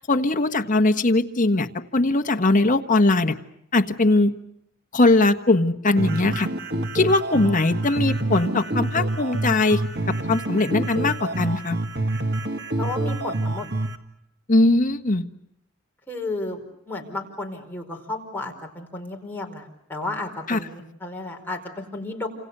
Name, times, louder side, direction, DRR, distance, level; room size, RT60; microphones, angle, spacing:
voice 1, 0.1-3.4 3.7-4.4 4.9-6.5 6.9-9.8 10.1-11.8 14.5-15.2 20.5-20.6, left 2 dB, 40° left, 7 dB, 1.4 m, -20 dB
sound 1, 6.0-14.0, right 2 dB, 55° right, 2.0 m, -27 dB
voice 2, 12.8-13.7 16.1-22.3, left 2 dB, 10° left, 1 dB, 4.8 m, -33 dB
29.5 x 27.5 x 6.8 m, 0.78 s
head